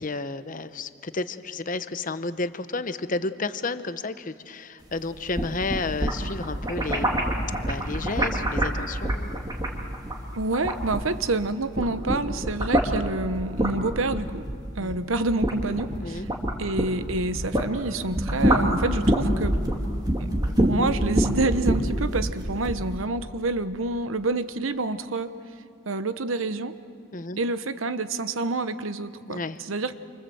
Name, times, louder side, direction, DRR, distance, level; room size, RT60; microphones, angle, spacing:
voice 1, 0.0-7.3 7.6-9.4 14.8-15.0 16.0-16.3 27.1-27.4 29.3-29.6, left 3 dB, 40° left, 12 dB, 0.8 m, -32 dB
sound 1, 5.1-11.4 11.7-17.7 18.0-22.8, right 1 dB, 20° right, 2.3 m, -26 dB
voice 2, 10.3-14.4 14.8-16.3 16.6-19.6 20.2-25.3 25.9-26.7 27.4-29.9, right 2 dB, 70° right, 12 dB, 1.0 m, -28 dB
27.5 x 25.0 x 7.8 m, 2.5 s
head